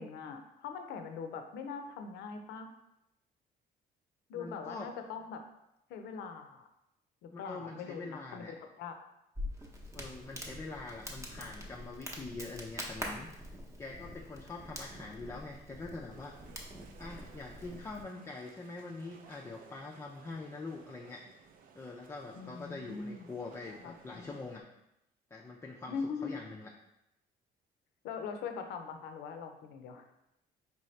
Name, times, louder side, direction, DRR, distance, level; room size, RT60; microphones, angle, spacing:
voice 1, 0.0-2.7 4.3-5.4 5.9-6.7 7.2-9.0 22.3-23.3 23.7-24.3 25.8-26.4 28.0-30.1, left 5 dB, 80° left, 6 dB, 0.5 m, -42 dB
voice 2, 4.3-4.9 7.3-8.5 9.9-13.3 13.8-16.4 17.0-21.4 21.8-24.7 25.3-26.7, left 3 dB, 15° left, -1 dB, 0.4 m, -44 dB
Crackle, 9.3-18.0, equal, 15° right, 0.7 m, -45 dB
sound 1, 16.1-24.6, right 6 dB, 55° right, 0.4 m, -59 dB
4.6 x 2.8 x 3.2 m, 0.84 s
cardioid pair, 110°, 17 cm